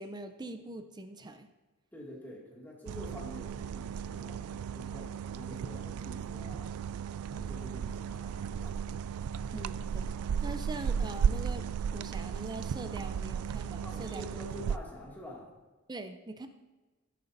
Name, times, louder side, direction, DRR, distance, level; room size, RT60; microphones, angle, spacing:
voice 1, 0.0-1.5 9.5-10.1 10.4-11.7 11.9-14.2 15.9-16.5, right 2 dB, 20° right, 8 dB, 0.5 m, -42 dB
voice 2, 1.9-6.8 7.3-8.8 13.8-15.6, left 1 dB, 10° left, -4 dB, 2.1 m, -47 dB
sound 1, 2.9-14.8, right 7 dB, 75° right, 0.3 m, -35 dB
sound 2, 4.1-11.0, equal, 65° left, 4.0 m, -56 dB
16.5 x 9.3 x 2.6 m, 1.2 s
head